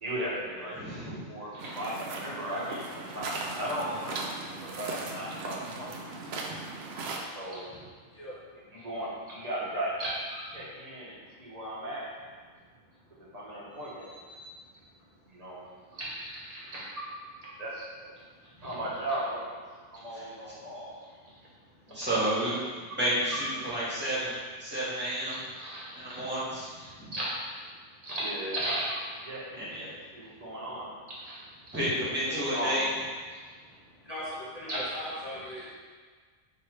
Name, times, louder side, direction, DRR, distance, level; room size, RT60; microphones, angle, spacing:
voice 1, 0.0-6.3 7.1-7.8 8.7-12.1 13.2-14.1 15.3-15.6 15.9-17.1 17.4-17.9 18.1-18.2 18.6-19.5 19.9-21.3 21.9-22.1 22.5-22.6 22.9-23.0 25.3-26.3 26.7-27.4 28.0-32.8 33.3-33.4 34.1-34.2 34.7-35.0 35.5-35.7, right 1 dB, 35° right, -7 dB, 1.0 m, -37 dB
voice 2, 0.7-1.2 20.1-20.3 21.9-22.5 22.9-24.3 24.6-25.4 25.9-26.7 27.0-27.1 29.6-29.8 31.7-32.8, right 1 dB, 10° right, -10 dB, 1.5 m, -31 dB
sound 1, 1.6-7.2, right 3 dB, 65° right, 0.8 m, -38 dB
voice 3, 8.1-8.9 13.0-13.2 15.8-15.9 18.5-18.6 21.2-22.0 26.8-27.1 30.1-30.6 31.6-31.7 32.4-32.6 33.3-35.7, left 1 dB, 35° left, -10 dB, 1.1 m, -43 dB
5.7 x 2.9 x 3.1 m, 1.5 s
omnidirectional pair, 1.2 m